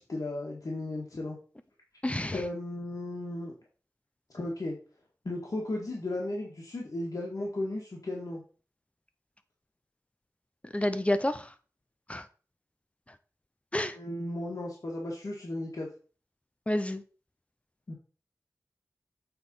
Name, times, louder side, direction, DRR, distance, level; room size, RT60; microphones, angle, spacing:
voice 1, 0.0-1.4 2.3-3.5 4.3-4.8 5.3-8.4 13.9-15.9 17.9-18.0, left 1 dB, 70° left, -2 dB, 1.8 m, -35 dB
voice 2, 2.0-2.4 10.7-11.5 12.1-12.3 13.7-14.0 16.7-17.0, left 1 dB, 20° left, 11 dB, 0.6 m, -29 dB
7.9 x 4.1 x 5.4 m, 0.38 s
wide cardioid pair, 65°, 6 cm